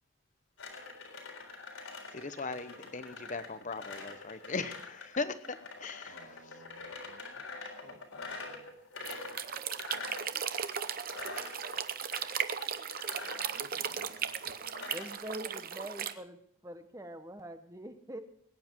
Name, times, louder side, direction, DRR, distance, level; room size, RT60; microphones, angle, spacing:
sound 1, 0.6-15.2, left 3 dB, 80° left, 3.9 m, -45 dB
voice 1, 2.1-6.1, left 4 dB, 35° left, 1.0 m, -38 dB
voice 2, 6.0-7.4 7.8-8.8 13.5-15.0, right 1 dB, 85° right, 2.4 m, -57 dB
sound 2, 9.0-16.1, right 8 dB, 45° right, 0.7 m, -37 dB
voice 3, 14.9-16.4 16.6-18.2, right 1 dB, 15° right, 1.1 m, -43 dB
21.0 x 9.9 x 4.7 m
head